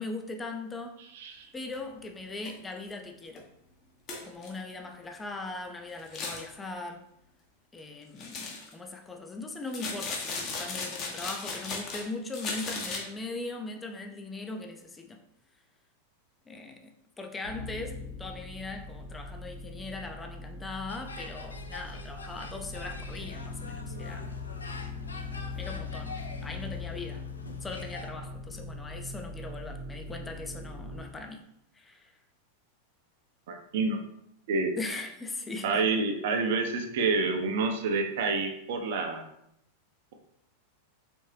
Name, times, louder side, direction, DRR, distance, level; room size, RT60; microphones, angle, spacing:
voice 1, 0.0-1.0 1.5-3.5 4.3-7.1 7.7-15.2 16.5-24.3 25.6-27.2 27.6-31.4 31.7-32.1 34.8-35.8, left 3 dB, 15° left, 4 dB, 0.5 m, -40 dB
voice 2, 1.1-1.5 33.5-34.0 34.5-34.7 35.6-39.2, right 4 dB, 55° right, 4 dB, 0.7 m, -28 dB
sound 1, 1.7-1.8 2.4-2.5 2.9-3.0 3.4-3.5 4.1-4.5 6.0-6.5 8.2-8.7 9.7-12.1 12.3-13.0, left 4 dB, 35° left, 0.9 m, -36 dB
sound 2, 17.4-31.0, left 3 dB, 60° left, 1.5 m, -41 dB
sound 3, 20.9-28.1, left 3 dB, 75° left, 0.5 m, -45 dB
4.2 x 3.6 x 3.2 m, 0.75 s
figure-of-eight pair, 90°, 0 cm